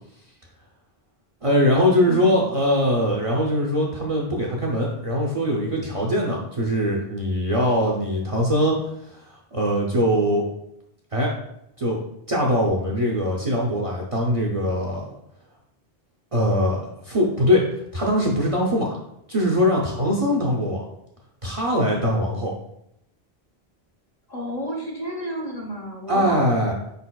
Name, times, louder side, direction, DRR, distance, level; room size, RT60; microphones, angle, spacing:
voice 1, 1.4-10.5 11.1-11.3 11.8-12.0 12.3-15.1 16.3-17.6 17.9-19.0 19.3-20.9 21.4-22.5 26.1-26.7, equal, 40° right, -2 dB, 0.6 m, -22 dB
voice 2, 2.1-2.5 24.3-26.7, equal, 40° left, -2 dB, 0.9 m, -32 dB
4.9 x 4.2 x 2.3 m, 0.79 s
omnidirectional pair, 1.1 m